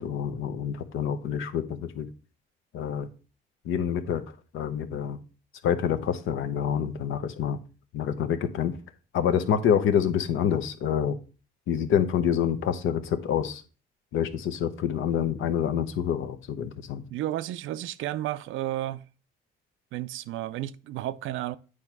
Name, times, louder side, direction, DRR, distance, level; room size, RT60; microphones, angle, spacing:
voice 1, 0.0-2.1 2.7-3.1 3.6-4.2 4.5-5.2 5.6-7.6 7.9-8.8 9.1-11.2 11.7-13.6 14.1-17.0, left 8 dB, 80° left, 0.9 m, -27 dB
voice 2, 17.1-19.0 19.9-21.6, right 14 dB, 80° right, 0.4 m, -32 dB
8.6 x 3.2 x 6.0 m
cardioid pair, 90°, 20 cm